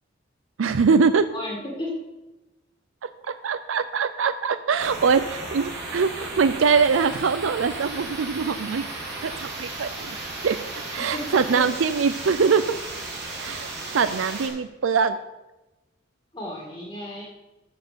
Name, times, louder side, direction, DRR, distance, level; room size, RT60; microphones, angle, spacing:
voice 1, 0.6-1.2 3.4-8.9 9.2-10.2 10.4-10.6 10.9-12.6 13.4-15.2, right 5 dB, 80° right, 12 dB, 0.5 m, -22 dB
voice 2, 1.3-1.9 10.8-11.6 16.3-17.2, left 1 dB, 25° left, -3 dB, 2.0 m, -34 dB
sound 1, 4.8-14.5, right 2 dB, 60° right, 3.4 m, -35 dB
13.5 x 4.5 x 6.8 m, 1.0 s
head